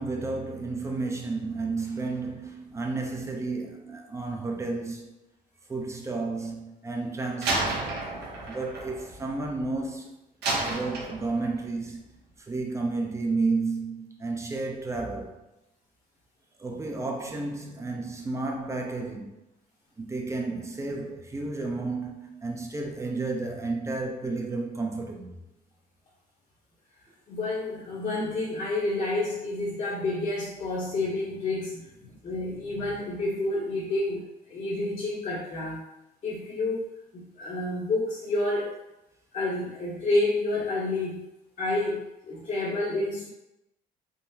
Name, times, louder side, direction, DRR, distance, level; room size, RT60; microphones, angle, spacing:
voice 1, 0.0-5.2 5.7-7.9 8.5-10.1 10.6-12.0 12.5-15.4 16.6-19.4 20.0-25.4, right 3 dB, 15° right, 0.4 m, -32 dB
Slam, 7.4-9.8 10.4-11.7, right 2 dB, 75° right, 0.8 m, -31 dB
voice 2, 27.3-31.9 32.2-35.8 36.2-36.8 37.1-38.7 39.3-41.2 41.6-43.3, left 2 dB, 45° left, 0.8 m, -29 dB
3.6 x 2.0 x 2.7 m
cardioid pair, 110°, 17 cm